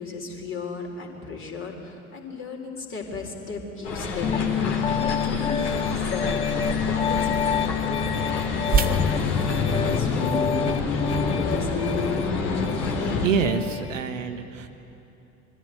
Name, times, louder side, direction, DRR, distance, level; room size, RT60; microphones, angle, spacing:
voice 1, 0.0-12.1, left 4 dB, 30° left, 1 dB, 3.7 m, -36 dB
sound 1, 3.8-13.3, left 3 dB, 65° left, 2.9 m, -27 dB
Piano, 4.2-13.9, left 8 dB, 15° left, 0.5 m, -28 dB
sound 2, 5.2-10.5, right 5 dB, 20° right, 1.3 m, -32 dB
voice 2, 13.2-14.7, right 5 dB, 75° right, 7 dB, 1.4 m, -26 dB
22.5 x 14.5 x 9.5 m, 2.8 s
figure-of-eight pair, 70°, 39 cm